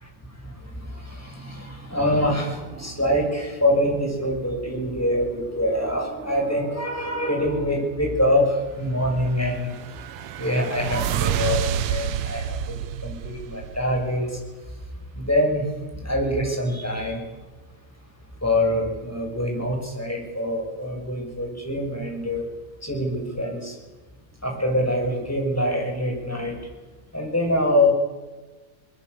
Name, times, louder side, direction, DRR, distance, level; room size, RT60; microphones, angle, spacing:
voice 1, 0.4-9.7 10.4-12.8 13.0-14.4 15.1-15.6 16.0-17.2 18.4-22.4 22.8-23.7 24.4-26.5 27.1-27.9, left 1 dB, 5° left, 1 dB, 6.6 m, -25 dB
sound 1, 9.2-14.2, right 10 dB, 90° right, 1.9 m, -28 dB
24.0 x 21.0 x 8.2 m, 1.2 s
omnidirectional pair, 2.4 m